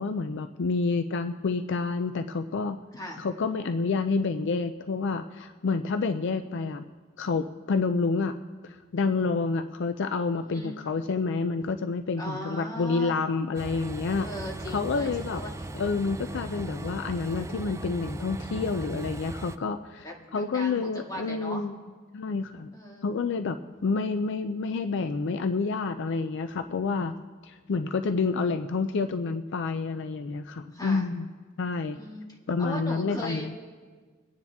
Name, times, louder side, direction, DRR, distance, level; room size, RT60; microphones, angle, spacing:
voice 1, 0.0-2.8 3.2-6.8 7.2-8.4 8.7-14.3 14.7-15.4 15.7-21.8 22.1-22.7 23.0-23.6 23.8-27.2 27.4-31.3 31.6-32.0 32.5-33.5, left 4 dB, 65° left, 10 dB, 0.4 m, -28 dB
voice 2, 2.9-3.3 10.4-10.8 12.2-13.2 14.2-15.7 20.0-21.7 22.7-23.0 30.7-31.1 31.9-32.2 32.6-33.6, equal, 20° left, -1 dB, 2.1 m, -38 dB
Train, 13.5-19.6, right 2 dB, 15° right, 0.4 m, -38 dB
24.0 x 9.4 x 3.5 m, 1.5 s
head